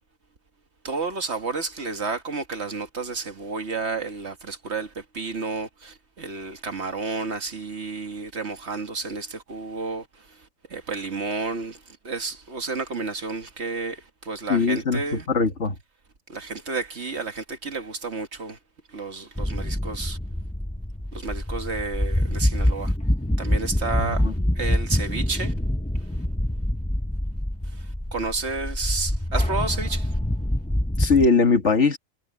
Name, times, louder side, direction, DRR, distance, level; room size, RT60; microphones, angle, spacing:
voice 1, 0.8-15.3 16.3-18.6 18.9-20.2 21.1-22.9 23.4-25.5 27.7-30.2, right 4 dB, 55° right, 2.0 m, -31 dB
voice 2, 14.5-15.8 24.0-24.3 31.0-32.0, left 4 dB, 65° left, 2.1 m, -21 dB
sound 1, 19.4-31.3, left 1 dB, 5° left, 0.9 m, -25 dB
omnidirectional pair, 1.3 m